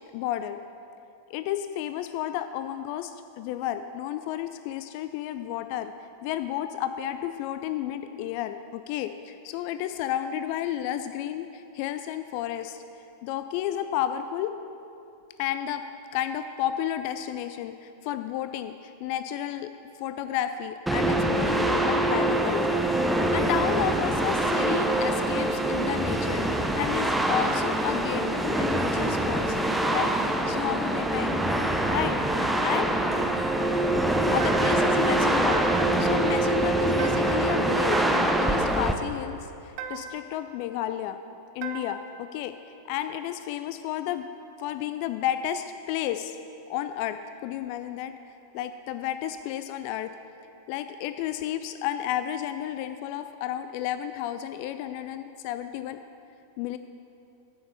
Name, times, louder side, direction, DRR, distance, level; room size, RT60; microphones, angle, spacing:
voice 1, 0.1-0.6 1.3-5.9 6.2-12.8 13.2-14.5 15.4-15.8 16.1-19.7 20.0-29.6 29.9-30.1 30.5-31.5 31.9-32.2 32.6-33.0 34.3-35.7 36.0-39.4 39.6-41.2 41.5-42.5 42.9-44.3 44.6-46.4 46.7-48.2 48.5-50.1 50.7-56.0 56.6-56.8, left 11 dB, 45° left, 10 dB, 0.3 m, -32 dB
sound 1, 20.9-38.9, right 1 dB, 5° right, 0.6 m, -24 dB
sound 2, 34.4-35.0 35.5-36.1 37.0-37.5 37.9-38.5 39.8-40.3 41.6-42.2, right 7 dB, 45° right, 0.7 m, -38 dB
9.3 x 6.7 x 6.8 m, 2.7 s
figure-of-eight pair, 90°, 0 cm